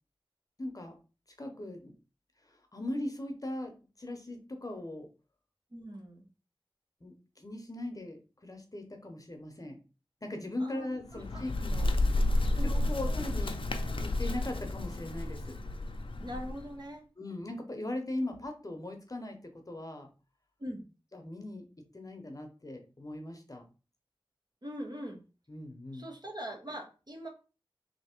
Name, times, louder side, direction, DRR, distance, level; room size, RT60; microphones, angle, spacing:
voice 1, 0.6-1.0 1.4-1.9 2.5-5.1 7.0-9.8 10.2-12.3 12.6-15.6 17.2-20.1 21.1-21.6 21.9-23.7 25.5-26.1, left 1 dB, 40° left, 4 dB, 0.8 m, -39 dB
voice 2, 5.7-6.2 10.6-11.4 12.6-12.9 16.2-17.0 20.6-20.8 24.6-25.2 25.9-27.3, equal, 45° right, 2 dB, 1.1 m, -42 dB
Bird, 11.0-16.8, left 1 dB, 70° left, 0.5 m, -31 dB
3.2 x 2.8 x 4.4 m, 0.33 s
wide cardioid pair, 65°, 9 cm